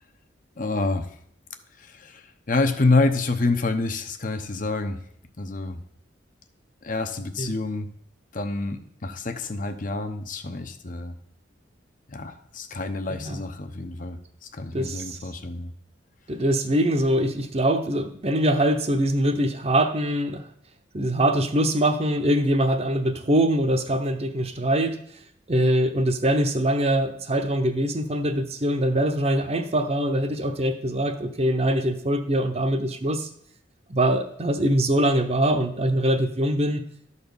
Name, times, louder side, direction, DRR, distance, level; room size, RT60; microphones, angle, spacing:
voice 1, 0.6-1.1 1.8-5.0 5.4-5.8 6.8-7.9 8.3-11.1 12.1-15.7, left 3 dB, 45° left, 7 dB, 0.9 m, -27 dB
voice 2, 13.1-13.4 14.7-15.2 16.3-20.5 20.9-25.0 25.5-33.3 33.9-36.8, right 1 dB, 35° right, 7 dB, 0.9 m, -23 dB
12.5 x 4.2 x 7.0 m, 0.67 s
head